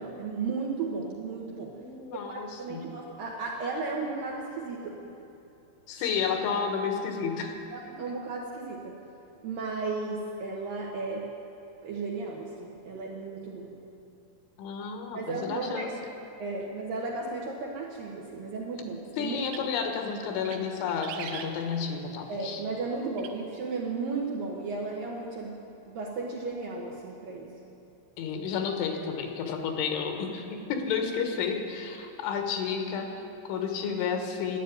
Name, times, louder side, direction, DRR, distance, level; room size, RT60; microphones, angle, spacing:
voice 1, 0.0-1.7 2.1-5.1 6.0-6.1 7.7-9.0 9.4-11.3 11.8-13.8 15.1-15.9 16.4-19.7 22.3-25.6 25.9-27.5, right 3 dB, 70° right, -2 dB, 2.2 m, -34 dB
voice 2, 1.8-2.9 5.9-7.6 14.6-15.9 19.2-22.6 28.2-34.6, left 6 dB, 80° left, 4 dB, 3.7 m, -31 dB
sound 1, 19.3-19.9 20.3-20.6 20.9-22.0 23.2-23.3, right 8 dB, 90° right, 3.4 m, -41 dB
12.5 x 10.5 x 9.2 m, 2.8 s
omnidirectional pair, 5.4 m